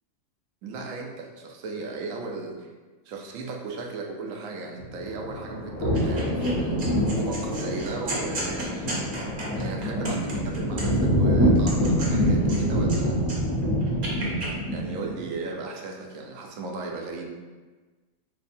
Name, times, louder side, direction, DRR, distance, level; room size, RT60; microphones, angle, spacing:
voice 1, 0.6-2.7 3.0-9.1 9.5-13.2 14.7-17.3, right 3 dB, 75° right, 1 dB, 0.9 m, -36 dB
sound 1, 4.8-15.2, equal, 50° left, 1.1 m, -25 dB
sound 2, 5.9-6.5 6.8-11.1 11.5-13.0 13.2-14.5, right 1 dB, 45° right, 0.8 m, -35 dB
3.3 x 2.0 x 4.2 m, 1.3 s
omnidirectional pair, 1.5 m